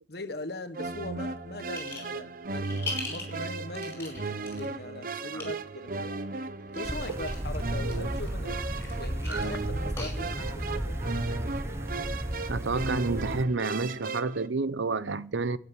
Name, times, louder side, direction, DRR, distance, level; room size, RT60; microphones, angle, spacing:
voice 1, 0.1-6.2 6.7-8.6 8.9-11.0, left 2 dB, 55° left, 1.4 m, -40 dB
sound 1, 0.7-14.5, right 3 dB, 45° right, 0.9 m, -36 dB
sound 2, 1.7-2.2 2.5-4.6 5.2-5.4 6.7-7.4 7.8-10.6, left 3 dB, 15° left, 5.4 m, -39 dB
sound 3, 6.8-13.4, right 1 dB, 15° right, 0.8 m, -34 dB
voice 2, 12.5-15.6, right 3 dB, 85° right, 0.7 m, -30 dB
12.5 x 8.6 x 9.5 m
head